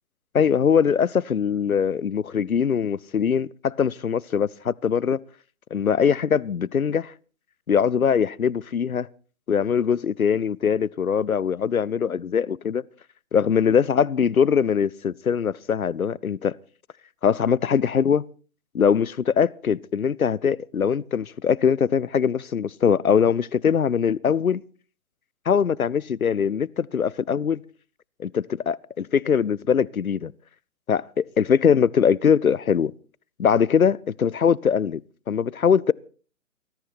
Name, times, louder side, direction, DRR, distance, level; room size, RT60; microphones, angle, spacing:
voice 1, 0.3-5.2 5.7-7.1 7.7-9.1 9.5-12.8 13.3-16.5 17.2-18.3 18.7-24.6 25.5-27.6 28.2-30.3 30.9-32.9 33.4-35.0 35.3-35.9, left 7 dB, 85° left, 0.7 m, -22 dB
20.5 x 13.5 x 4.3 m
figure-of-eight pair, 130°, 41 cm